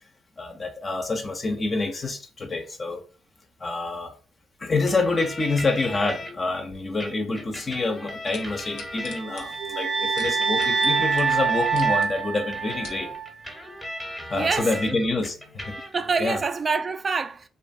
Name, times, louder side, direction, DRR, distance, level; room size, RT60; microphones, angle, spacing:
voice 1, 0.4-3.0 3.6-4.1 4.6-13.1 13.7-13.8 14.3-15.4 15.7-15.8 16.2-16.4, left 3 dB, 35° left, 0.5 m, -27 dB
sound 1, 4.9-6.3 7.0-9.6 10.2-14.9 15.2-16.1, left 1 dB, 5° left, 0.7 m, -38 dB
sound 2, 8.3-10.9 11.2-11.3 11.6-12.1 12.6-13.0 13.7-13.8, left 4 dB, 90° left, 0.6 m, -43 dB
sound 3, 9.1-13.3, right 5 dB, 85° right, 0.6 m, -25 dB
voice 2, 14.3-15.1 15.9-17.5, right 4 dB, 35° right, 0.3 m, -26 dB
2.5 x 2.2 x 2.6 m
cardioid pair, 90°, 0 cm